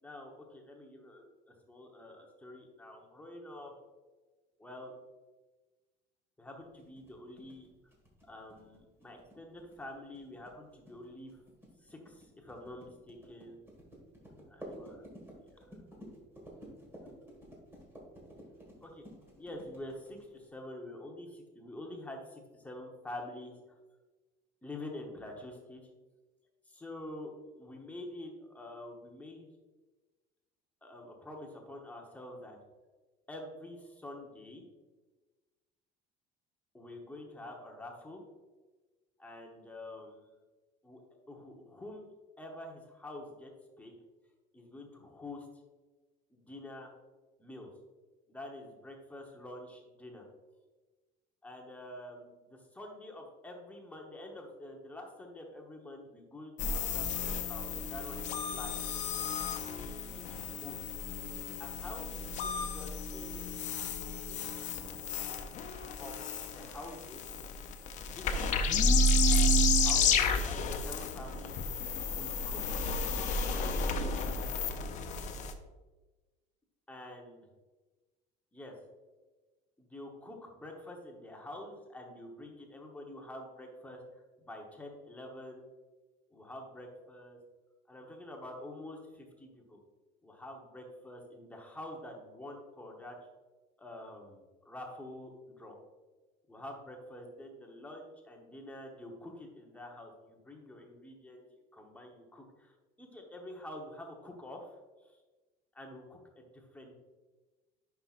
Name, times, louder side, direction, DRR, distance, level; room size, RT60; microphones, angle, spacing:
voice 1, 0.0-3.7 4.6-4.9 6.4-7.7 8.2-11.4 11.8-13.6 14.3-15.0 15.4-15.7 18.8-19.0 19.4-23.8 24.6-25.8 26.7-29.5 30.8-32.6 33.3-34.6 36.7-38.2 39.2-40.3 40.8-41.0 41.3-42.0 42.4-43.5 43.8-43.9 44.5-45.5 46.3-46.9 47.4-47.7 48.3-50.2 51.4-58.7 59.6-60.8 61.6-63.5 64.3-64.6 66.0-66.2 66.5-67.2 68.2-68.9 69.8-71.6 72.1-74.2 76.9-77.4 78.5-78.7 79.8-85.6 86.3-87.4 87.9-89.8 90.2-93.2 93.8-95.7 96.5-104.7 105.0-105.2 105.7-107.0, left 1 dB, 10° left, 1 dB, 1.0 m, -47 dB
sound 1, 6.8-20.5, right 1 dB, 10° right, 1.6 m, -52 dB
sound 2, 56.6-75.5, left 2 dB, 40° left, 0.6 m, -31 dB
9.7 x 5.7 x 2.5 m, 1.2 s
cardioid pair, 165°, 19 cm